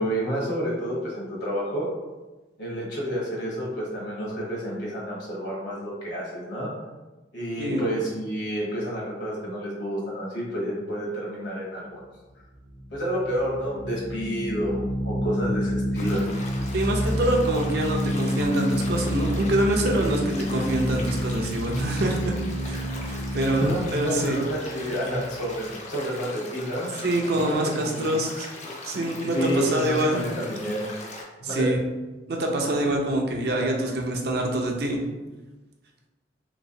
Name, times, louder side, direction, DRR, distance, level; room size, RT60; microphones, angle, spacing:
voice 1, 0.0-1.9 2.6-6.7 7.3-12.0 12.9-16.2 23.6-26.9 27.3-28.1 29.3-30.9 31.5-31.7, equal, 70° left, -4 dB, 1.1 m, -29 dB
sound 1, 12.5-25.8, equal, 90° right, 0.8 m, -29 dB
sound 2, 16.0-31.2, left 2 dB, 40° left, 0.4 m, -40 dB
voice 2, 16.7-22.3 22.6-24.4 27.0-28.5 28.8-30.2 31.4-31.8 32.3-35.0, right 1 dB, 55° right, 1 dB, 0.5 m, -25 dB
3.0 x 3.0 x 2.7 m, 1.2 s
head